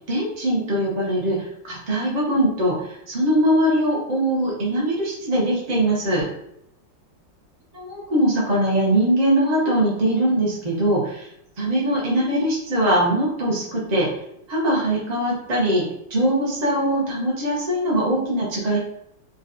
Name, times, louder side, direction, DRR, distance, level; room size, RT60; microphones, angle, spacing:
voice 1, 0.1-6.3 7.7-11.3 11.6-14.1 14.5-18.8, right 1 dB, 45° right, -4 dB, 0.5 m, -21 dB
3.8 x 2.2 x 2.5 m, 0.75 s
omnidirectional pair, 2.0 m